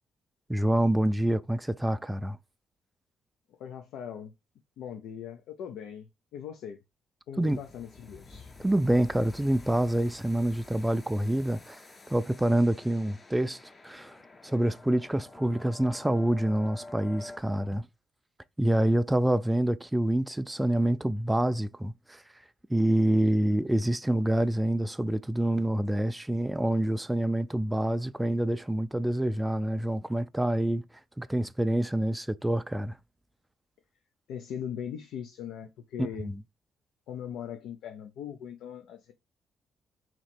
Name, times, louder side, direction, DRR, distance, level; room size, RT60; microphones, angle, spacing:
voice 1, 0.5-2.4 7.4-7.6 8.6-11.8 12.1-14.2 14.4-17.9 18.6-22.2 22.7-30.8 31.2-33.0 36.0-36.4, right 1 dB, 10° right, 0.3 m, -27 dB
voice 2, 3.6-4.3 4.8-6.8 7.3-8.5 34.3-36.3 37.1-39.1, left 8 dB, 85° left, 0.5 m, -40 dB
sound 1, 7.4-17.4, left 3 dB, 30° left, 0.6 m, -49 dB
3.0 x 2.9 x 4.2 m
cardioid pair, 90°, 0 cm